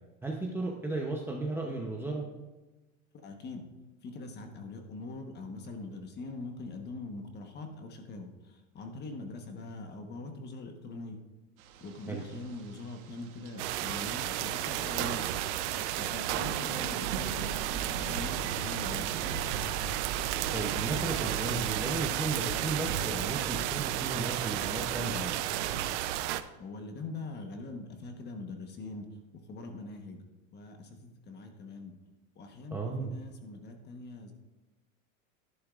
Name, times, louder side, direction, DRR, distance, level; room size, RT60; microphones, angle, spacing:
voice 1, 0.2-2.3 12.1-12.2 20.5-25.4 32.7-33.1, right 2 dB, 5° right, -1 dB, 0.7 m, -35 dB
voice 2, 3.2-3.6 4.0-11.2 11.8-15.3 16.0-17.5 17.9-19.1 26.3-29.1 29.3-30.2 30.5-31.9 32.3-34.3, left 3 dB, 25° left, 5 dB, 1.2 m, -43 dB
sound 1, 11.6-25.9, right 5 dB, 90° right, 1.3 m, -40 dB
sound 2, 13.6-26.4, right 13 dB, 55° right, 0.6 m, -33 dB
11.0 x 11.0 x 2.5 m, 1.1 s
supercardioid pair, 140°, 41 cm